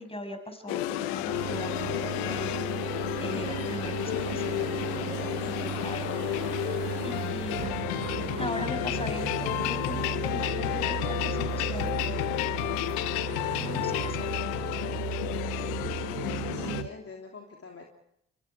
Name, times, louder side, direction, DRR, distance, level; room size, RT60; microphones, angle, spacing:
voice 1, 0.0-6.1 7.0-7.8 8.4-12.0 13.6-14.4, left 1 dB, 15° left, 6 dB, 6.4 m, -39 dB
sound 1, 0.7-16.8, left 15 dB, 80° left, 1.0 m, -31 dB
sound 2, 1.2-16.9, right 11 dB, 55° right, 0.8 m, -36 dB
AT&T Cordless Phone in charger with station AM Radio, 3.3-9.7, right 5 dB, 80° right, 6.5 m, -54 dB
voice 2, 16.5-17.8, left 4 dB, 40° left, 1 dB, 3.2 m, -44 dB
30.0 x 24.5 x 4.8 m, 0.79 s
hypercardioid pair, 45°, 36 cm